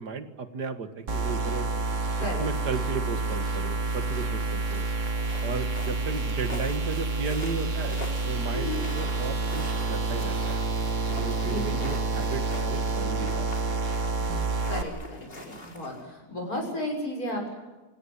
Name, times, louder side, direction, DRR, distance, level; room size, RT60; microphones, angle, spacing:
voice 1, 0.0-1.7 2.2-4.9 5.4-10.6 11.2-13.8 14.2-14.6, right 5 dB, 85° right, 10 dB, 2.4 m, -35 dB
sound 1, 1.1-14.8, right 3 dB, 50° right, 1.9 m, -28 dB
sound 2, 5.0-16.0, left 2 dB, 35° left, 3.6 m, -45 dB
voice 2, 8.5-8.8 11.4-12.3 14.7-17.5, left 1 dB, 60° left, 0 dB, 7.2 m, -34 dB
27.5 x 17.0 x 9.8 m, 1.2 s
omnidirectional pair, 1.7 m